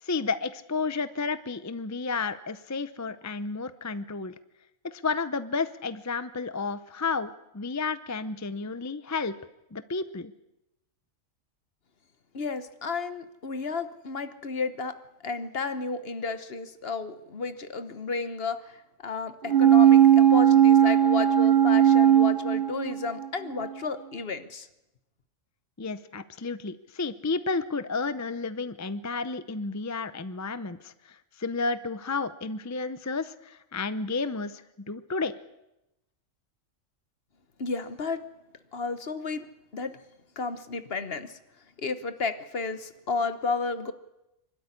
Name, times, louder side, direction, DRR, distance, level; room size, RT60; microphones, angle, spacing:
voice 1, 0.0-4.3 4.8-9.3 9.7-10.3 25.8-35.3, left 4 dB, 20° left, 13 dB, 0.5 m, -32 dB
voice 2, 12.3-14.9 15.2-24.7 37.6-38.2 38.7-39.4 39.7-40.0 40.4-41.4 41.8-43.9, left 4 dB, 50° left, 11 dB, 1.3 m, -32 dB
sound 1, 19.5-23.3 23.6-23.7, right 10 dB, 45° right, 1.0 m, -18 dB
25.0 x 12.5 x 9.8 m, 0.92 s
omnidirectional pair, 1.4 m